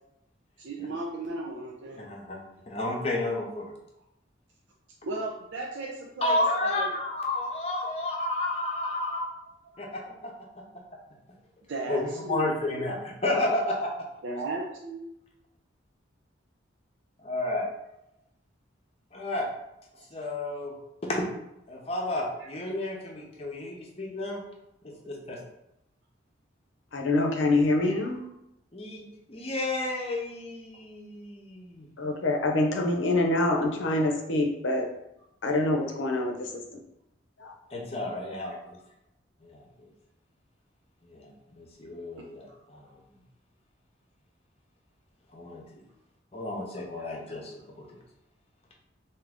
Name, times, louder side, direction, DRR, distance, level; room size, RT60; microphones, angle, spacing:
voice 1, 0.6-2.1 5.0-6.9 11.7-12.9 14.2-15.0 19.9-20.0 42.5-42.6, right 2 dB, 75° right, -2 dB, 0.5 m, -35 dB
voice 2, 1.9-3.7 6.2-9.2 9.8-10.3 10.7-10.8 11.9-13.9 17.2-17.7 19.1-19.5 20.1-20.7 21.0-21.3 21.7-24.4 24.8-25.4 28.7-31.9 37.7-38.8 39.4-39.9 41.0-43.0 45.3-45.8 46.3-48.0, left 2 dB, 30° left, -1 dB, 0.7 m, -32 dB
voice 3, 26.9-28.2 32.0-34.9 35.4-36.6 37.4-37.8, left 2 dB, 80° left, 2 dB, 0.7 m, -26 dB
3.6 x 2.8 x 3.5 m, 0.84 s
head